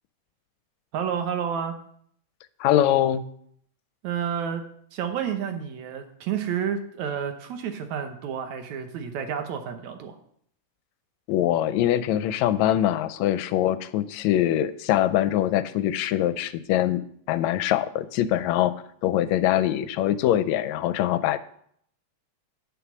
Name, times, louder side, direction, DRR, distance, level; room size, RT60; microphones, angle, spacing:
voice 1, 0.9-1.8 4.0-4.6 4.9-10.2, right 8 dB, 75° right, 6 dB, 2.3 m, -30 dB
voice 2, 2.6-3.3 11.3-17.0 17.3-18.7 19.0-21.4, left 12 dB, 80° left, 14 dB, 1.8 m, -23 dB
9.2 x 6.9 x 6.1 m, 0.65 s
omnidirectional pair, 3.3 m